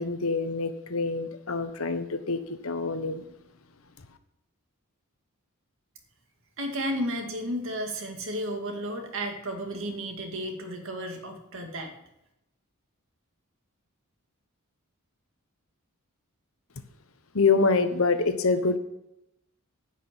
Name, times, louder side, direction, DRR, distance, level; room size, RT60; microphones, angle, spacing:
voice 1, 0.0-3.2 17.3-18.8, left 4 dB, 65° left, 9 dB, 1.1 m, -26 dB
voice 2, 6.6-11.9, equal, 60° right, 3 dB, 2.2 m, -33 dB
10.5 x 6.0 x 8.8 m, 0.84 s
head